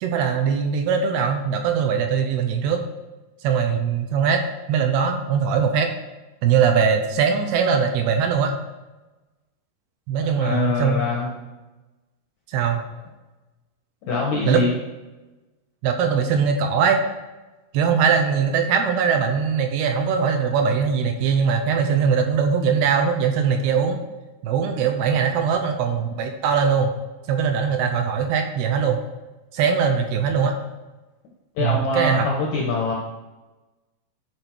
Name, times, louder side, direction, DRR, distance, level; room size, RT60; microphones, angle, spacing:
voice 1, 0.0-2.8 3.4-4.4 4.7-5.9 6.4-8.6 10.1-11.4 12.5-12.8 14.4-14.6 15.8-17.0 17.7-24.0 24.4-26.9 27.3-29.0 29.5-30.6 31.6-32.3, right 6 dB, 80° right, 5 dB, 2.5 m, -21 dB
voice 2, 10.2-11.3 14.1-14.7 30.4-30.6 31.6-32.9, left 3 dB, 75° left, -2 dB, 1.7 m, -24 dB
11.5 x 4.3 x 4.5 m, 1.1 s
omnidirectional pair, 5.0 m